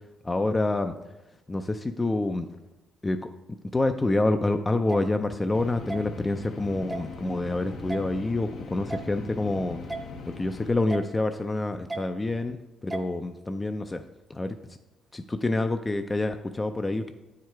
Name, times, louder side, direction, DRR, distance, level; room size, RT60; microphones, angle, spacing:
voice 1, 0.2-1.0 1.5-2.5 3.0-3.3 3.7-9.8 10.3-14.0 14.3-14.8 15.1-17.1, left 2 dB, 20° left, 7 dB, 0.4 m, -27 dB
sound 1, 4.9-5.0 5.9-6.0 6.9-7.1 7.9-8.0 8.9-9.1 9.9-10.0 10.9-11.1 11.9-12.0 12.9-13.1, right 3 dB, 15° right, 0.7 m, -33 dB
sound 2, 5.5-10.7, left 4 dB, 70° left, 0.7 m, -41 dB
9.3 x 4.8 x 4.5 m, 1.0 s
cardioid pair, 90°, 0 cm